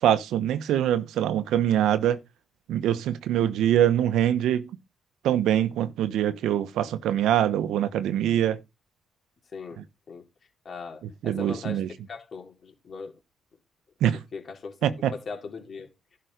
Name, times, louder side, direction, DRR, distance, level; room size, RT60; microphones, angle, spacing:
voice 1, 0.0-2.2 2.7-4.7 5.2-8.6 9.8-9.9 11.2-11.9 14.0-14.2 14.8-15.1, right 11 dB, 80° right, 1.0 m, -24 dB
voice 2, 10.6-11.8 12.1-13.1 14.3-14.9 15.1-15.9, left 4 dB, 45° left, 3.9 m, -39 dB
11.5 x 5.3 x 5.1 m
cardioid pair, 90°, 0 cm